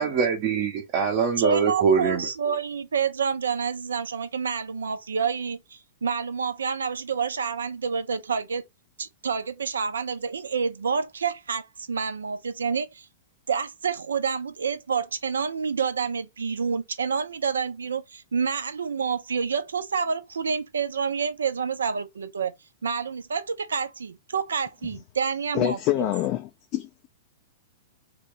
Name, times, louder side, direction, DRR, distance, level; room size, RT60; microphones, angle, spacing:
voice 1, 0.0-2.3, right 6 dB, 40° right, 0.8 m, -23 dB
voice 2, 1.4-8.6 9.0-13.1 13.5-22.5 22.8-26.1, right 6 dB, 70° right, 0.5 m, -28 dB
voice 3, 25.5-27.1, left 14 dB, 40° left, 0.4 m, -26 dB
3.0 x 2.2 x 3.9 m
figure-of-eight pair, 100°, 0 cm